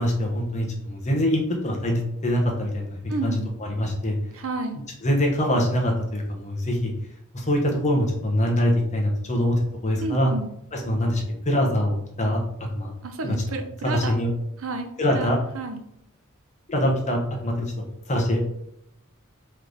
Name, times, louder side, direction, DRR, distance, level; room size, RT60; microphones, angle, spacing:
voice 1, 0.0-3.0 3.2-4.2 5.0-6.9 7.3-10.3 10.7-12.4 12.7-12.9 13.2-13.4 13.8-14.3 15.0-15.4 16.7-17.7 18.1-18.4, equal, 35° left, 1 dB, 0.9 m, -24 dB
voice 2, 3.1-3.5 4.3-4.8 10.0-10.5 13.0-14.2 14.6-15.8, right 2 dB, 65° right, 7 dB, 0.5 m, -31 dB
3.9 x 3.3 x 3.3 m, 0.79 s
head